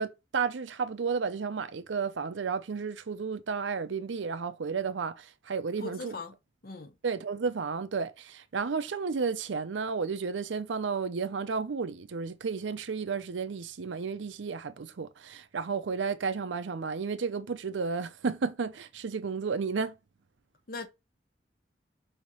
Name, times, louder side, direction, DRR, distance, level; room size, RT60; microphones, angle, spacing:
voice 1, 0.0-6.2 7.0-19.9, right 5 dB, 80° right, 0.5 m, -32 dB
voice 2, 5.8-6.4 6.6-6.9 20.7-20.9, left 3 dB, 50° left, 0.7 m, -39 dB
5.5 x 2.8 x 3.0 m
head